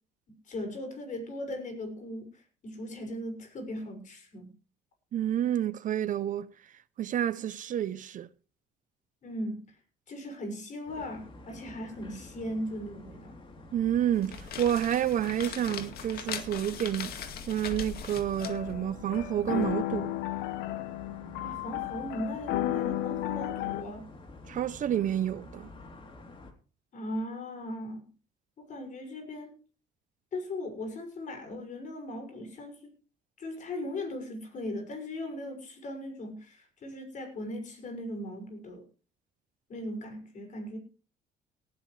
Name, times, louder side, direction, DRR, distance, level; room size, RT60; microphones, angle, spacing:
voice 1, 0.5-4.5 9.2-9.8 10.1-13.3 21.4-24.1 26.9-28.1 28.6-29.5 30.3-32.9 33.4-38.8 39.7-40.8, left 1 dB, 50° left, 6.3 m, -38 dB
voice 2, 5.1-6.5 7.0-8.3 13.7-17.1 17.5-20.2 24.5-25.7, right 10 dB, 50° right, 0.7 m, -29 dB
sound 1, 10.8-26.5, left 2 dB, 30° left, 3.4 m, -49 dB
sound 2, 14.1-19.7, left 8 dB, 65° left, 2.0 m, -41 dB
sound 3, 18.4-23.8, left 14 dB, 90° left, 1.0 m, -33 dB
18.5 x 13.0 x 3.3 m
cardioid pair, 110°, 17 cm